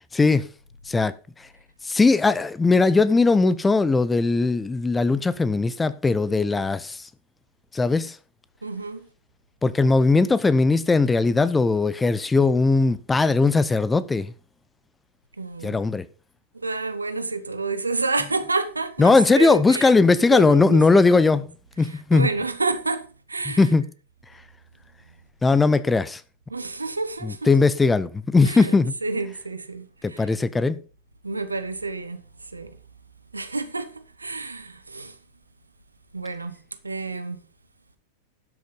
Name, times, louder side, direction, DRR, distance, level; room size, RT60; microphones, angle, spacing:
voice 1, 0.1-0.5 0.9-1.1 1.8-7.1 7.7-8.2 9.6-14.3 15.6-16.1 19.0-21.5 21.8-22.3 23.6-23.8 25.4-26.2 27.2-28.9 30.0-30.8, left 3 dB, 10° left, 0.6 m, -19 dB
voice 2, 8.6-9.1 15.4-15.8 16.5-21.0 21.3-21.4 21.8-23.7 26.5-27.5 28.4-30.3 31.2-32.8 33.3-35.2 36.1-37.4, right 3 dB, 80° right, 1.1 m, -30 dB
12.0 x 6.5 x 5.3 m
figure-of-eight pair, 90°, 0 cm